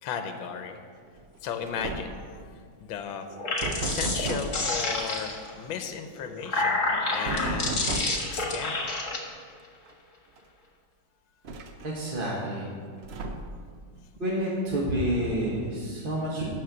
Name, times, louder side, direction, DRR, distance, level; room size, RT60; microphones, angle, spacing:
voice 1, 0.0-0.8 1.4-2.2 2.5-3.2 3.9-8.1 8.3-8.8, left 7 dB, 80° left, 7 dB, 1.5 m, -35 dB
sound 1, 1.2-1.4 1.6-2.3 3.6-4.6 7.2-8.3 9.9-10.0 10.4-10.5 11.4-12.1 13.0-13.7, right 3 dB, 75° right, 0.6 m, -34 dB
sound 2, 3.3-5.5 6.2-9.2, left 2 dB, 40° left, 1.8 m, -29 dB
voice 2, 11.8-12.7 14.2-16.6, right 1 dB, 30° right, -5 dB, 1.3 m, -29 dB
12.5 x 4.4 x 7.9 m, 2.1 s
omnidirectional pair, 2.1 m